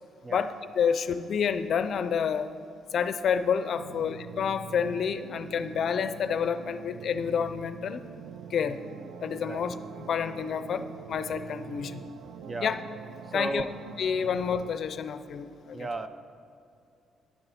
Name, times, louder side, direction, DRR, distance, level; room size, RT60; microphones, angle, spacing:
voice 1, 0.3-2.5 2.9-8.1 8.5-8.8 9.2-12.1 12.6-12.8 13.3-13.6 14.0-15.9, left 7 dB, 60° left, 11 dB, 0.5 m, -29 dB
sound 1, 3.8-14.8, right 8 dB, 85° right, 0.3 m, -44 dB
voice 2, 12.4-12.8 13.2-13.7 15.7-16.1, right 2 dB, 30° right, 11 dB, 0.6 m, -34 dB
11.0 x 10.5 x 4.2 m, 2.5 s
cardioid pair, 90°, 0 cm